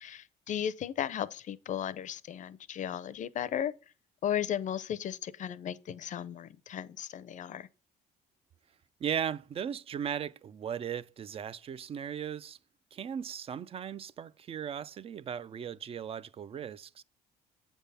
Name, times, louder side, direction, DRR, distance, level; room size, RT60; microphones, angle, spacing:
voice 1, 0.0-3.7 4.2-7.7, left 10 dB, 50° left, 0.6 m, -35 dB
voice 2, 9.0-12.6 12.9-17.0, right 8 dB, 35° right, 0.4 m, -37 dB
8.1 x 3.5 x 5.5 m
cardioid pair, 110°, 17 cm